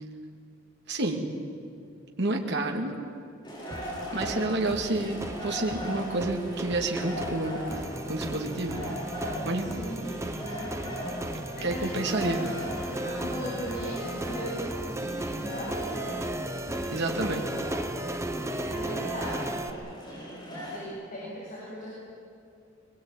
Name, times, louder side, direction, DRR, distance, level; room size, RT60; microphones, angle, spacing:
voice 1, 0.9-1.2 2.2-2.9 4.1-7.8 8.1-8.9 9.4-9.7 11.6-12.4 16.9-17.4, right 2 dB, 60° right, 1 dB, 2.5 m, -29 dB
sound 1, 3.4-20.9, equal, 25° left, 6.9 m, -39 dB
sound 2, 3.7-19.7, right 1 dB, 15° right, 1.0 m, -36 dB
voice 2, 9.6-10.0 10.4-10.8 11.5-16.2 18.6-19.9 20.6-21.9, equal, 45° left, -7 dB, 7.4 m, -39 dB
23.0 x 22.0 x 8.9 m, 2.5 s
head